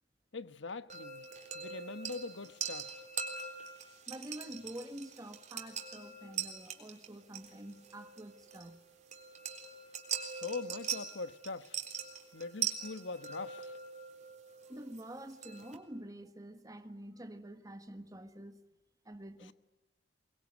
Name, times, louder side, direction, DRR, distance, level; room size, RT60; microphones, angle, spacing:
voice 1, 0.3-1.3 1.5-3.0 10.2-11.8 12.3-13.8 19.4-19.5, left 3 dB, 80° left, 1.1 m, -42 dB
sound 1, 0.9-15.8, right 7 dB, 40° right, 3.8 m, -42 dB
voice 2, 4.1-8.8 14.7-18.6 19.0-19.5, right 1 dB, 20° right, 1.4 m, -47 dB
23.0 x 22.5 x 9.5 m
head